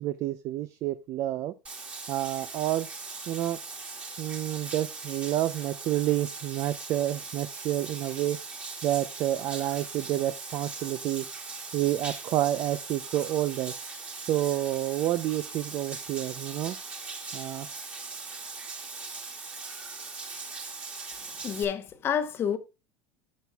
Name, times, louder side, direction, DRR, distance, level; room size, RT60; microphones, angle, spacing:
voice 1, 0.0-1.5 2.1-2.9 3.3-3.6 4.2-8.4 8.8-11.2 11.7-13.7 14.3-16.8 17.3-17.7, right 13 dB, 40° right, 0.5 m, -29 dB
Bathtub (filling or washing), 1.6-21.6, right 4 dB, 15° right, 1.7 m, -40 dB
voice 2, 21.4-22.6, left 8 dB, 25° left, 0.9 m, -28 dB
15.0 x 6.0 x 2.3 m
supercardioid pair, 160°, 9 cm